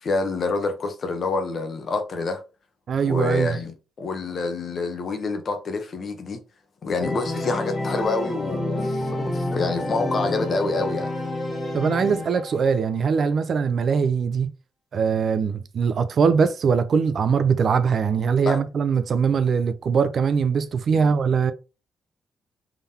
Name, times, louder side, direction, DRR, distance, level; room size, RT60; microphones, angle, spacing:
voice 1, 0.0-2.4 3.0-6.4 6.8-11.1 18.4-18.6 20.9-21.1, left 3 dB, 40° left, 0.8 m, -27 dB
voice 2, 2.9-3.6 11.7-14.5 14.9-21.5, right 6 dB, 45° right, 0.4 m, -21 dB
Organ, 7.0-12.7, left 1 dB, 20° left, 1.1 m, -28 dB
3.7 x 3.5 x 2.8 m
cardioid pair, 135°, 0 cm